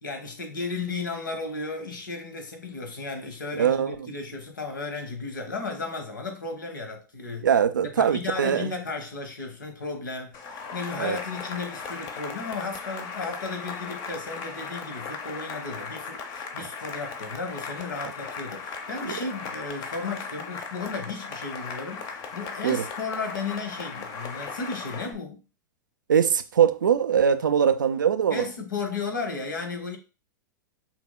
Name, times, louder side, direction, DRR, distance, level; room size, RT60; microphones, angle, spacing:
voice 1, 0.0-7.5 7.8-25.4 28.3-30.0, left 4 dB, 85° left, 1.0 m, -34 dB
voice 2, 3.6-3.9 7.4-8.7 11.0-11.2 19.0-19.1 22.6-22.8 26.1-28.4, right 8 dB, 85° right, 0.4 m, -22 dB
Cheering / Applause, 10.3-25.1, left 5 dB, 40° left, 0.7 m, -37 dB
5.6 x 2.1 x 2.2 m
hypercardioid pair, 100°, 10 cm